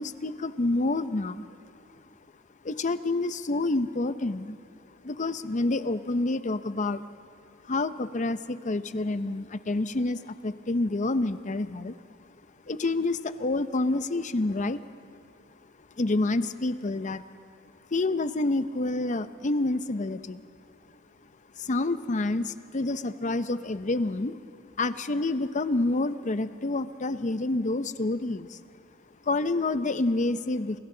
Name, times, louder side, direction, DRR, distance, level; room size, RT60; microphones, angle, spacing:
voice 1, 0.0-1.4 2.6-4.6 5.0-7.0 7.6-12.0 12.7-14.8 16.0-17.2 17.9-20.4 21.6-24.4 24.8-28.6 29.2-30.8, left 2 dB, 40° left, 12 dB, 0.7 m, -28 dB
28.5 x 27.5 x 3.9 m, 2.4 s
head